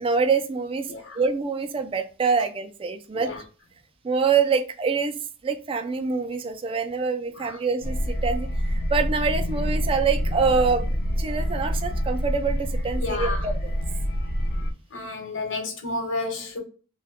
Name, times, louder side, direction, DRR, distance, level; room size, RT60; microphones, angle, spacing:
voice 1, 0.0-0.9 1.2-3.3 4.0-5.2 5.4-13.6, right 5 dB, 25° right, 0.3 m, -25 dB
voice 2, 0.9-1.2 3.1-3.4 7.3-7.6 13.0-13.5 14.9-16.6, left 2 dB, 70° left, 1.0 m, -31 dB
sound 1, 7.8-14.7, equal, 45° left, 0.5 m, -26 dB
2.7 x 2.2 x 3.4 m
head